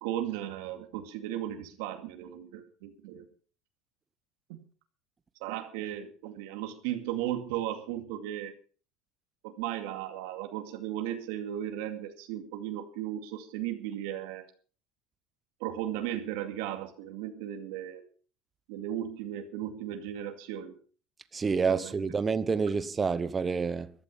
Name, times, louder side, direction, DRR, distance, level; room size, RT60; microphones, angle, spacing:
voice 1, 0.0-3.3 5.4-8.5 9.4-14.4 15.6-18.0 18.7-20.8 21.7-21.9, right 11 dB, 85° right, 2.3 m, -36 dB
voice 2, 21.3-23.9, right 5 dB, 15° right, 0.8 m, -28 dB
15.0 x 12.5 x 5.5 m
cardioid pair, 165°, 0 cm